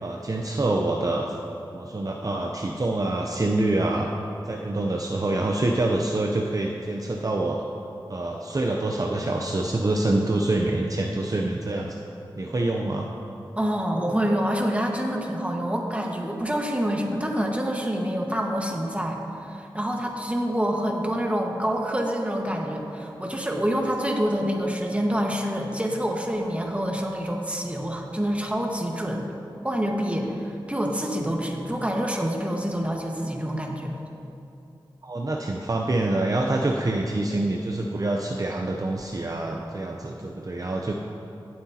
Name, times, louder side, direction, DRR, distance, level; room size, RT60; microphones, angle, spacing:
voice 1, 0.0-1.3 1.7-4.1 4.5-7.7 8.1-11.9 12.4-13.1 35.0-40.9, right 2 dB, 40° right, 0 dB, 0.7 m, -26 dB
voice 2, 13.5-29.3 29.6-34.0, equal, 15° right, 0 dB, 1.5 m, -27 dB
17.0 x 7.9 x 2.9 m, 2.7 s
cardioid pair, 45°, 9 cm